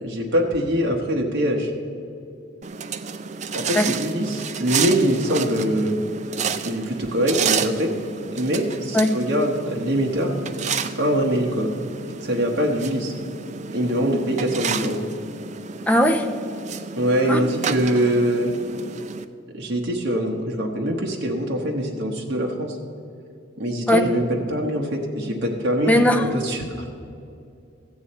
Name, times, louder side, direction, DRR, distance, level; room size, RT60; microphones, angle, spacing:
voice 1, 0.0-1.7 3.5-6.0 6.6-7.9 8.3-11.7 12.2-13.1 13.7-15.0 17.0-18.5 19.5-22.8 23.6-26.9, equal, 65° right, 0 dB, 1.0 m, -23 dB
sound 1, 2.6-19.2, right 6 dB, 40° right, 0.4 m, -31 dB
voice 2, 15.9-16.3 17.3-17.4 23.9-24.0 25.9-26.3, left 1 dB, 10° left, 3 dB, 0.6 m, -18 dB
14.0 x 8.4 x 4.2 m, 2.6 s
head